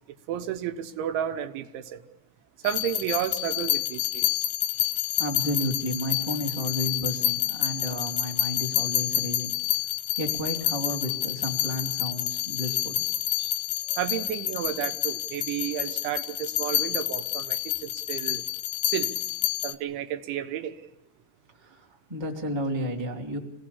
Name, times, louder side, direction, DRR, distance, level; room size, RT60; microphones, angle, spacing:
voice 1, 0.3-2.0 2.6-4.5 13.4-13.5 13.9-18.4 18.8-19.1 19.6-20.8, right 10 dB, 80° right, 3.3 m, -32 dB
sound 1, 2.6-19.7, left 14 dB, 75° left, 2.3 m, -28 dB
voice 2, 5.2-9.5 10.2-13.0 21.5-23.4, equal, 10° right, 1.4 m, -32 dB
25.5 x 18.5 x 7.1 m
omnidirectional pair, 5.6 m